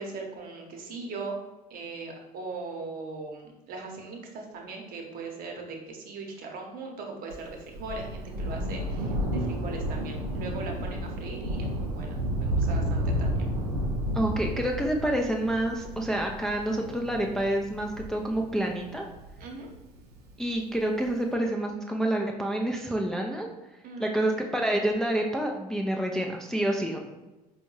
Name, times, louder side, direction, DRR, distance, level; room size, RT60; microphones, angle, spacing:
voice 1, 0.0-1.4 1.7-13.5 19.4-19.7 23.8-24.4, right 3 dB, 50° right, 1 dB, 0.8 m, -39 dB
Thunder, 7.3-20.2 21.1-21.2, equal, 80° right, 0.5 m, -31 dB
voice 2, 14.1-19.1 20.4-23.5 24.0-27.0, right 1 dB, 5° left, 1 dB, 0.3 m, -28 dB
4.3 x 2.2 x 3.0 m, 1.1 s
figure-of-eight pair, 60°, 20 cm